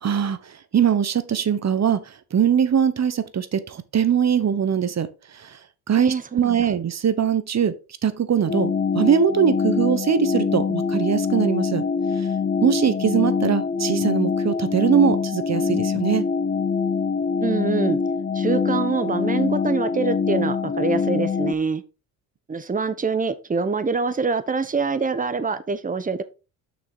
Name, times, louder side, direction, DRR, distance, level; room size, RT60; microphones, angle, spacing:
voice 1, 0.0-5.1 5.3-5.6 5.9-7.7 8.0-11.8 12.6-16.2, right 8 dB, 35° right, 1.2 m, -21 dB
voice 2, 6.0-6.6 17.4-18.0 18.3-21.8 22.5-26.2, right 4 dB, 20° right, 1.1 m, -25 dB
sound 1, 8.5-21.5, left 5 dB, 25° left, 0.7 m, -24 dB
6.5 x 6.0 x 4.5 m
supercardioid pair, 70°, 44 cm